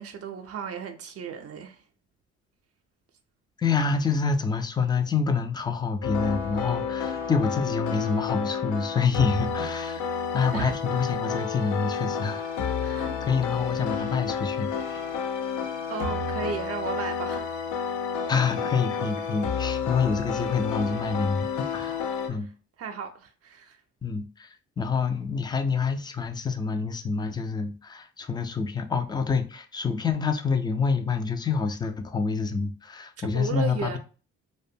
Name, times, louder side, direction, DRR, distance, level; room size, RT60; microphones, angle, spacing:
voice 1, 0.0-1.8 10.5-10.8 12.8-13.2 15.9-17.5 18.0-18.1 22.2-22.4 22.8-23.8 33.2-34.0, right 6 dB, 50° right, 0.4 m, -35 dB
voice 2, 3.6-10.1 10.3-12.5 13.2-15.0 18.3-22.5 24.0-34.0, left 5 dB, 15° left, 0.3 m, -27 dB
sound 1, 6.0-22.3, left 6 dB, 80° left, 0.5 m, -30 dB
2.5 x 2.1 x 2.6 m
cardioid pair, 90°, 30 cm